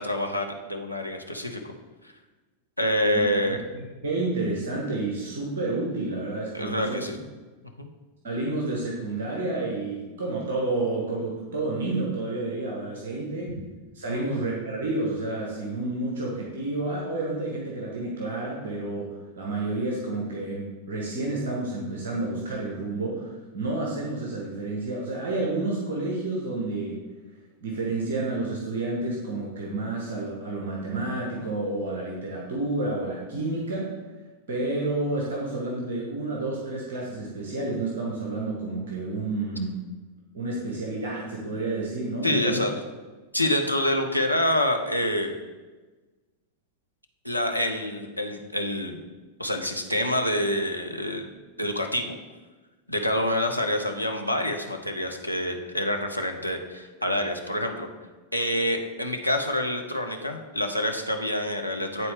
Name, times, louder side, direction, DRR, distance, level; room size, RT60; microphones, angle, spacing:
voice 1, 0.0-1.7 2.8-3.6 6.5-7.2 7.8-7.9 14.1-14.3 42.2-42.7 43.3-45.3 47.2-49.0 49.4-51.3 51.6-52.2 52.9-57.9 58.3-62.1, left 1 dB, 90° left, 3 dB, 0.7 m, -27 dB
voice 2, 3.7-7.0 8.2-13.5 13.9-19.1 19.3-27.0 27.6-33.9 34.5-39.8 40.3-42.6, right 2 dB, 60° right, -3 dB, 1.4 m, -30 dB
10.0 x 4.0 x 3.5 m, 1.2 s
figure-of-eight pair, 90°, 0 cm